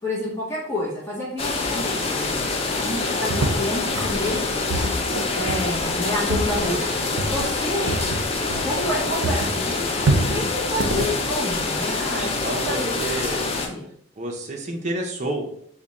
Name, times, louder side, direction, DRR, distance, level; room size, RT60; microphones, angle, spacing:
voice 1, 0.0-4.4 5.3-8.0 8.6-13.0 13.5-13.9, left 1 dB, 15° left, -8 dB, 0.9 m, -29 dB
sound 1, 1.4-13.7, left 3 dB, 30° left, 0.4 m, -26 dB
sound 2, 3.3-9.0 9.2-12.1, right 2 dB, 85° right, 0.5 m, -27 dB
voice 2, 12.2-13.4 14.2-15.5, right 1 dB, 35° right, 1 dB, 0.6 m, -29 dB
3.4 x 2.2 x 4.0 m, 0.69 s
head